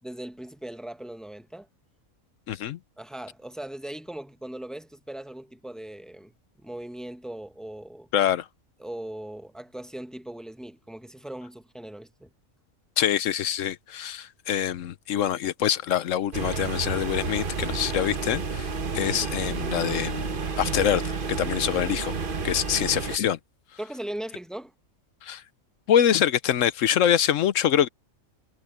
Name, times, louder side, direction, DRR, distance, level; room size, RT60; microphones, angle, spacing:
voice 1, 0.0-1.7 3.0-6.3 6.6-8.1 8.8-12.3 23.8-24.7, right 1 dB, ahead, 0.9 m, -39 dB
voice 2, 2.5-2.8 8.1-8.4 13.0-18.7 18.9-21.0 21.3-22.1 22.4-23.4 25.2-25.4 25.9-27.9, left 10 dB, 65° left, 1.1 m, -25 dB
sound 1, 16.3-23.2, right 4 dB, 40° right, 1.2 m, -30 dB
omnidirectional pair, 1.5 m